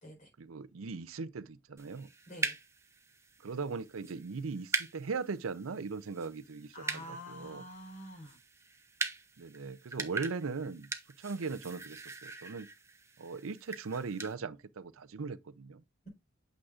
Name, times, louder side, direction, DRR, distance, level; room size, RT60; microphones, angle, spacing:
voice 1, 0.4-2.1 3.4-7.6 9.4-10.9 11.2-12.7 13.2-15.8, right 4 dB, 90° right, 0.6 m, -39 dB
sound 1, 1.8-14.3, right 3 dB, 15° right, 0.7 m, -42 dB
voice 2, 6.7-8.4, equal, 40° left, 4.3 m, -47 dB
8.7 x 6.3 x 2.5 m
head